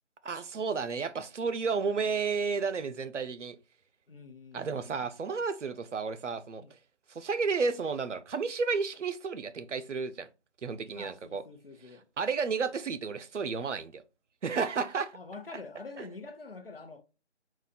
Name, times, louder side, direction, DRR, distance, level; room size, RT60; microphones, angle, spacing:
voice 1, 0.2-3.6 4.5-6.6 7.1-10.3 10.6-11.4 12.2-14.0 14.4-15.2 16.0-16.1, right 5 dB, 90° right, 0.6 m, -32 dB
voice 2, 4.1-5.1 6.6-6.8 10.9-12.0 15.1-17.0, left 3 dB, 55° left, 0.8 m, -46 dB
4.0 x 2.4 x 4.0 m
figure-of-eight pair, 170°, 35 cm